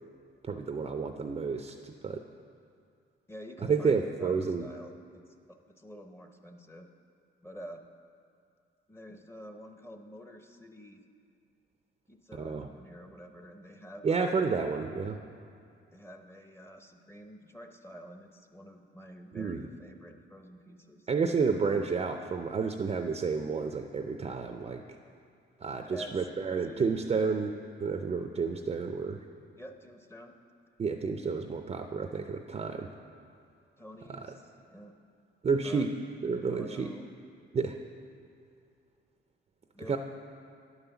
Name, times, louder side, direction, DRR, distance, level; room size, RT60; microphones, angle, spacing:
voice 1, 0.4-2.3 3.6-4.7 12.4-12.7 14.0-15.2 19.3-19.7 21.1-24.8 25.6-27.5 27.8-29.2 30.8-32.9 34.1-34.3 35.4-35.9 36.2-36.9 37.5-37.8 39.9-40.0, right 5 dB, 30° right, 6 dB, 0.5 m, -30 dB
voice 2, 3.3-6.9 7.4-7.8 8.9-11.0 12.1-14.4 15.9-21.1 25.8-26.3 26.6-27.4 29.6-30.3 33.8-34.9 35.6-35.9 36.3-37.1 39.7-40.0, equal, 15° left, 5 dB, 0.7 m, -48 dB
9.7 x 5.6 x 7.0 m, 2.4 s
cardioid pair, 90°, 20 cm